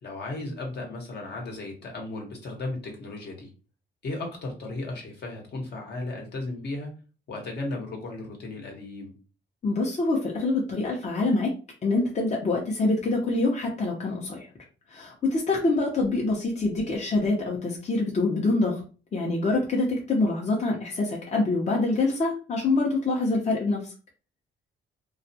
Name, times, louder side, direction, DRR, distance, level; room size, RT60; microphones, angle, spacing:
voice 1, 0.0-3.5 4.0-6.9 7.3-9.2, left 2 dB, 55° left, 1 dB, 1.0 m, -35 dB
voice 2, 9.6-11.5 11.8-14.5 14.9-18.8 19.1-23.9, left 2 dB, 35° left, -2 dB, 0.7 m, -25 dB
2.3 x 2.1 x 2.7 m, 0.35 s
cardioid pair, 90°, 20 cm